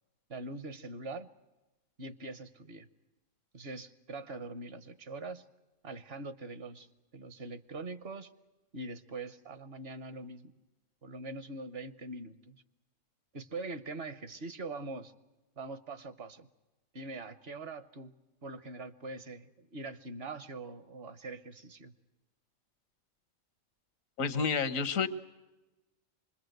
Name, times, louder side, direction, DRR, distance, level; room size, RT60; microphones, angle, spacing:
voice 1, 0.3-1.3 2.0-2.9 3.5-5.4 5.8-6.9 7.1-8.3 8.7-10.5 11.0-12.6 13.3-15.1 15.6-16.5 16.9-18.1 18.4-21.9, right 2 dB, 55° right, 13 dB, 1.1 m, -43 dB
voice 2, 24.2-25.1, left 5 dB, 90° left, 13 dB, 1.4 m, -29 dB
25.5 x 21.0 x 7.9 m, 1.1 s
omnidirectional pair, 1.3 m